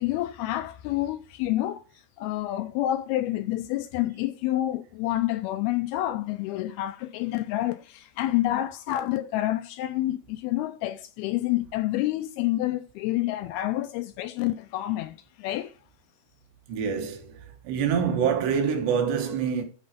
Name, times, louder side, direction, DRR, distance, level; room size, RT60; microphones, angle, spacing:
voice 1, 0.0-1.8 2.2-15.7, left 15 dB, 80° left, 2.3 m, -28 dB
voice 2, 16.7-17.4 17.6-19.6, right 7 dB, 80° right, 3.6 m, -25 dB
12.0 x 4.4 x 5.0 m
omnidirectional pair, 4.8 m